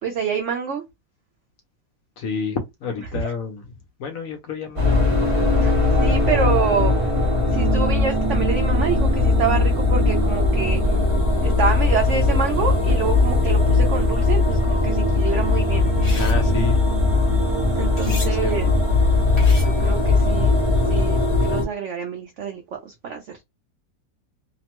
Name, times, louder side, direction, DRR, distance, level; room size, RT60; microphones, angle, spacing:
voice 1, 0.0-0.8 3.1-3.3 5.6-6.9 7.5-10.8 11.4-16.0 17.8-18.7 19.6-20.5 20.9-23.2, right 6 dB, 80° right, 0.6 m, -27 dB
voice 2, 2.2-3.6 4.0-5.2 16.1-16.8 17.0-17.2 18.0-18.8, left 5 dB, 70° left, 0.8 m, -29 dB
sound 1, 4.8-21.6, left 2 dB, 35° right, 0.5 m, -19 dB
sound 2, 15.8-16.4 18.0-18.3 19.4-19.9, left 2 dB, 20° left, 0.8 m, -35 dB
2.9 x 2.1 x 2.8 m
omnidirectional pair, 1.9 m